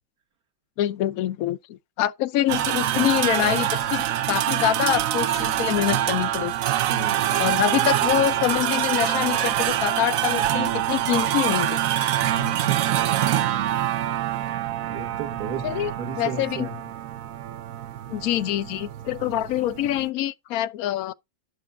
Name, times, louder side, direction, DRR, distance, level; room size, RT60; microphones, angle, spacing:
voice 1, 0.8-6.5 7.3-11.8 15.6-15.9 16.2-16.7 18.1-21.1, left 12 dB, 65° left, 0.9 m, -25 dB
sound 1, 2.5-20.1, right 12 dB, 90° right, 0.7 m, -25 dB
voice 2, 6.9-7.5 12.2-13.0 14.9-15.7 16.0-16.8, right 5 dB, 55° right, 1.5 m, -34 dB
12.0 x 6.8 x 2.3 m
omnidirectional pair, 2.1 m